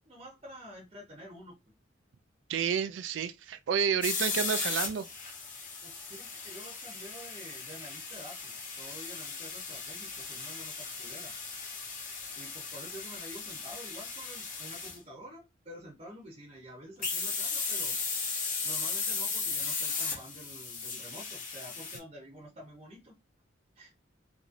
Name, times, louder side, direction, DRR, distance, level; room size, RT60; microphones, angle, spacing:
voice 1, 0.1-1.6 5.8-11.3 12.3-18.0 18.6-23.1 23.8-23.9, equal, 35° right, 0.9 m, -49 dB
voice 2, 2.5-5.1, right 7 dB, 75° right, 0.3 m, -30 dB
sound 1, 4.0-15.0 17.0-22.0, left 4 dB, 45° left, 1.0 m, -36 dB
3.0 x 2.7 x 2.6 m
head